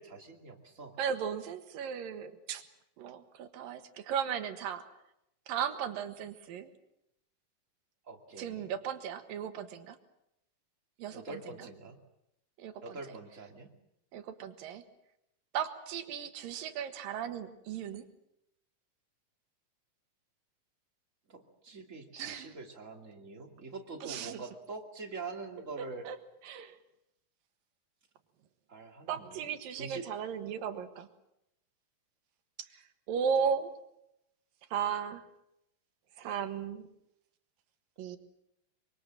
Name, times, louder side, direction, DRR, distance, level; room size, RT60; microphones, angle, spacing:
voice 1, 0.0-0.9 8.1-8.7 11.1-12.0 12.8-13.7 21.3-26.0 28.7-30.0, right 3 dB, 25° right, 3 dB, 2.5 m, -45 dB
voice 2, 1.0-2.6 3.0-4.8 5.5-6.7 8.4-10.0 11.0-11.7 12.6-13.2 14.1-14.8 15.5-18.1 22.2-22.5 24.0-24.4 25.8-26.2 26.4-26.8 29.1-31.1 32.6-33.7 34.7-35.2 36.2-36.9 38.0-38.2, right 7 dB, 80° right, 9 dB, 3.2 m, -36 dB
24.5 x 24.5 x 7.6 m, 0.82 s
omnidirectional pair, 4.0 m